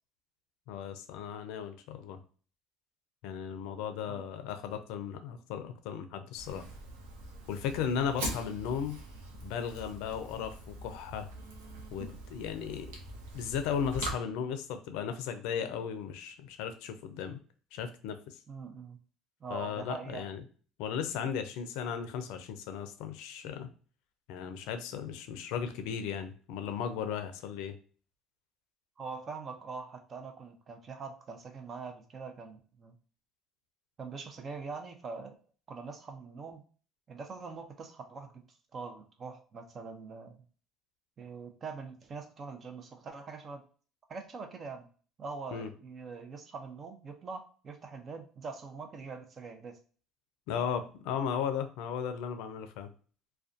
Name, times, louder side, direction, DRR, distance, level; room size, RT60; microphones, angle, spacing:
voice 1, 0.7-2.2 3.2-6.7 7.5-9.0 9.4-11.3 11.9-12.9 13.3-17.4 17.7-18.4 19.5-20.4 20.8-23.7 24.3-27.8 45.5-45.7 50.5-52.9, left 7 dB, 80° left, 8 dB, 0.4 m, -36 dB
Fire, 6.4-14.1, right 2 dB, 90° right, 0.6 m, -43 dB
voice 2, 18.5-19.0 19.4-20.3 29.0-32.9 34.0-35.3 35.7-36.6 37.1-38.4 38.7-40.4 41.2-43.6 44.1-44.9 45.2-49.8, right 4 dB, 40° right, 6 dB, 0.6 m, -43 dB
2.4 x 2.2 x 2.5 m, 0.41 s
supercardioid pair, 80°, 0 cm